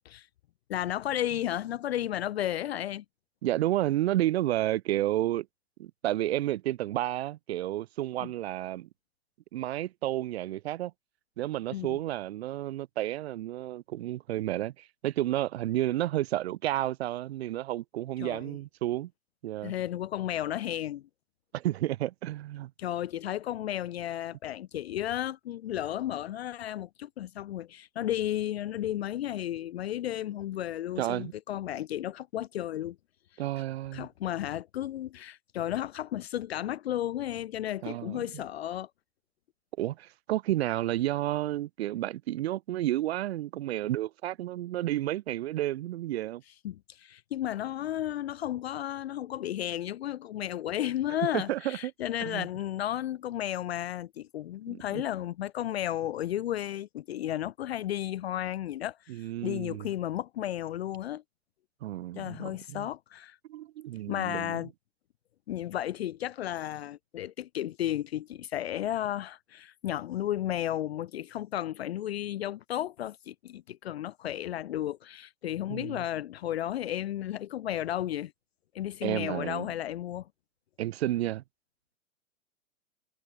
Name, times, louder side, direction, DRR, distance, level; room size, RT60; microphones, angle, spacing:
voice 1, 0.7-3.0 8.2-8.3 11.7-12.0 18.2-18.6 19.6-21.0 22.8-33.0 33.9-38.9 46.6-61.2 62.1-63.4 64.1-64.7 65.5-78.3 78.7-80.3, left 12 dB, 50° left, 0.5 m, -33 dB
voice 2, 3.4-5.5 5.8-8.9 9.5-10.9 11.4-19.1 19.4-19.7 21.5-22.7 31.0-31.3 33.4-34.1 37.8-38.2 39.8-46.4 51.2-51.9 52.2-52.5 54.7-55.0 59.1-59.9 61.8-62.9 63.5-64.6 75.7-76.0 79.0-79.7 80.8-81.4, right 14 dB, 50° right, 1.7 m, -31 dB
hypercardioid pair, 125°, 42 cm